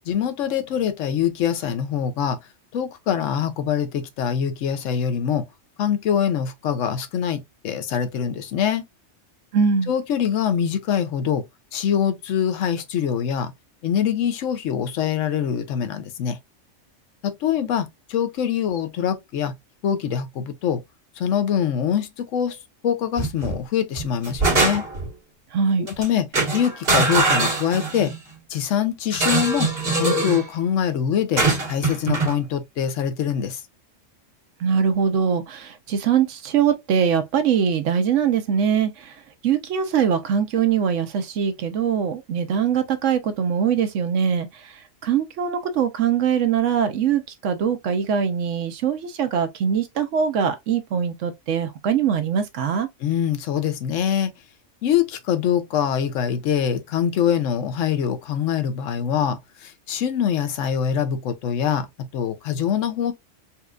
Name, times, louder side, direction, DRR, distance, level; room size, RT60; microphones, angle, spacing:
voice 1, 0.1-2.4 2.7-5.5 5.8-8.8 9.9-11.5 11.7-13.5 13.8-16.4 17.2-19.5 19.8-20.8 21.2-24.9 25.8-28.1 28.5-29.7 30.0-33.6 53.0-54.3 54.8-63.1, left 8 dB, 75° left, 1.0 m, -24 dB
voice 2, 9.5-9.9 25.5-25.9 34.6-39.1 39.4-44.7 45.0-52.9, right 7 dB, 75° right, 1.0 m, -22 dB
sound 1, 23.2-23.6 24.0-25.1 25.9-26.1 26.3-28.2 29.1-30.5 31.4-32.4, right 3 dB, 50° right, 1.9 m, -22 dB
4.2 x 2.3 x 2.3 m
omnidirectional pair, 1.3 m